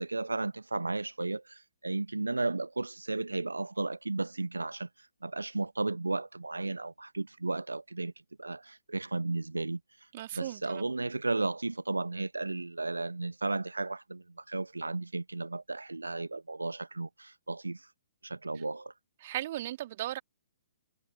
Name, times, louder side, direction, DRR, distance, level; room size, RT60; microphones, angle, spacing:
voice 1, 0.0-8.1 8.4-17.9 18.2-18.9, right 3 dB, 80° right, 0.7 m, -34 dB
voice 2, 10.1-10.9 19.2-20.2, right 14 dB, 45° right, 1.8 m, -36 dB
figure-of-eight pair, 125°, 0 cm